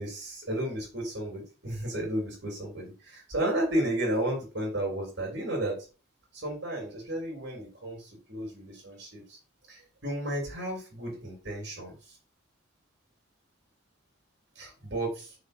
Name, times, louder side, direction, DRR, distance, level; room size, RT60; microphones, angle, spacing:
voice 1, 0.0-5.8 6.3-9.4 9.7-12.2 14.5-15.4, right 1 dB, 55° right, -2 dB, 3.1 m, -33 dB
6.3 x 4.0 x 5.0 m, 0.34 s
head